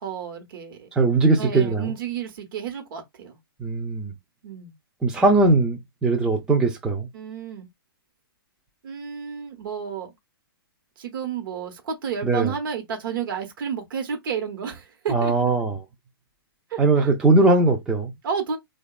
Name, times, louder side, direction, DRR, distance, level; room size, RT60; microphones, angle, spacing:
voice 1, 0.0-0.9 1.4-3.4 4.4-4.7 7.1-7.7 8.8-10.1 11.0-15.5 16.7-17.1 18.2-18.6, right 7 dB, 60° right, 0.9 m, -31 dB
voice 2, 1.0-1.9 3.6-4.1 5.0-7.1 12.2-12.5 15.1-15.8 16.8-18.1, right 3 dB, 5° right, 0.3 m, -20 dB
2.8 x 2.2 x 2.2 m
hypercardioid pair, 135°, 13 cm